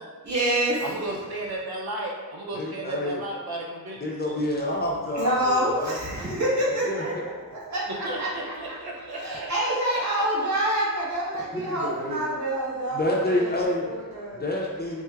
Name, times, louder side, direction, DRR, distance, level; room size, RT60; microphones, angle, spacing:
voice 1, 0.2-0.8 5.1-8.7 9.1-14.4, right 1 dB, 50° right, -7 dB, 1.1 m, -27 dB
voice 2, 0.8-4.4 7.9-9.5, right 1 dB, 90° right, -2 dB, 0.6 m, -34 dB
voice 3, 2.5-3.2 4.0-5.9 6.9-7.2 11.5-12.2 12.9-13.9 14.3-15.0, left 1 dB, 25° left, -3 dB, 0.5 m, -28 dB
4.4 x 2.1 x 2.3 m, 1.5 s
wide cardioid pair, 65°, 36 cm